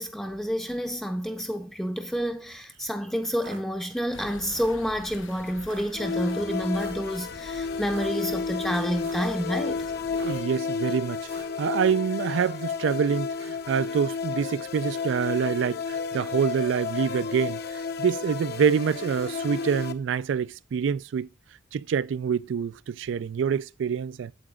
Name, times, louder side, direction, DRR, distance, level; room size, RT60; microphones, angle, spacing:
voice 1, 0.0-9.9, equal, 5° left, 0.6 m, -29 dB
sound 1, 3.3-3.6 4.4-4.8 5.6-5.9 6.7-7.1 7.8-8.1 8.9-9.3 10.1-10.5 11.2-11.6, right 4 dB, 85° right, 1.4 m, -46 dB
sound 2, 4.1-10.4, left 2 dB, 90° left, 1.0 m, -46 dB
sound 3, 5.9-19.9, left 5 dB, 55° left, 0.8 m, -32 dB
voice 2, 10.1-11.3 11.6-21.3 21.7-24.3, right 6 dB, 70° right, 0.3 m, -26 dB
8.8 x 7.5 x 2.3 m
head